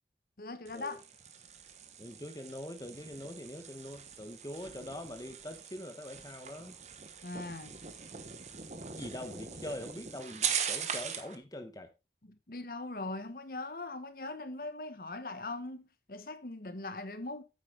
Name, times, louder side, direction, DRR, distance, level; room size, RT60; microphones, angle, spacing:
voice 1, 0.4-1.0 7.2-7.7 12.2-17.4, left 2 dB, 50° left, 1.0 m, -40 dB
sound 1, 0.6-11.4, right 7 dB, 40° right, 1.1 m, -41 dB
voice 2, 2.0-6.8 8.9-11.9, left 1 dB, 20° left, 1.0 m, -43 dB
9.1 x 8.2 x 3.7 m
head